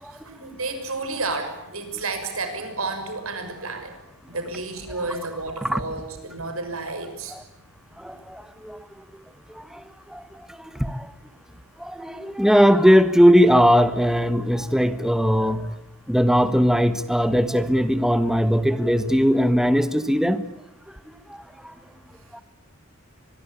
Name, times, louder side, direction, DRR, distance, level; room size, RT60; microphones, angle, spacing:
voice 1, 0.0-3.9 4.3-7.3, right 3 dB, 80° right, 7 dB, 6.4 m, -31 dB
voice 2, 8.0-8.8 9.7-9.8 10.1-10.2 10.8-11.0 11.8-15.7 16.1-20.4 21.6-21.7 22.3-22.4, equal, ahead, 12 dB, 1.4 m, -19 dB
25.0 x 22.0 x 8.7 m, 0.90 s
head